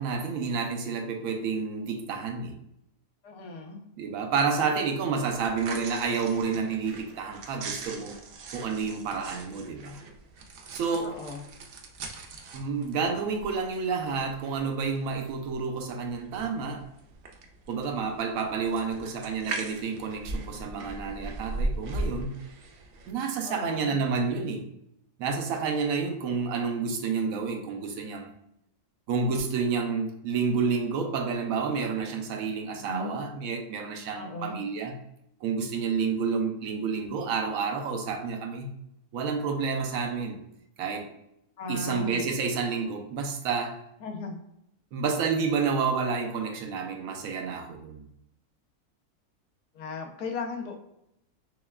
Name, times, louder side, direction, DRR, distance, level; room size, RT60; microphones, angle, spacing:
voice 1, 0.0-2.6 4.0-8.2 8.5-10.0 10.7-11.2 12.5-16.8 17.7-22.3 23.1-24.6 25.2-28.3 29.1-34.9 35.4-38.7 39.1-40.4 40.8-41.1 41.7-43.8 44.9-48.1, right 5 dB, 70° right, 4 dB, 1.0 m, -29 dB
voice 2, 3.2-3.8 10.9-11.4 23.4-24.0 32.7-33.2 34.1-34.6 41.6-42.2 44.0-44.4 49.7-50.8, left 3 dB, 90° left, 2 dB, 1.3 m, -36 dB
sound 1, 5.3-23.1, right 2 dB, 85° right, 0.5 m, -39 dB
6.2 x 2.3 x 2.2 m, 0.80 s
omnidirectional pair, 1.6 m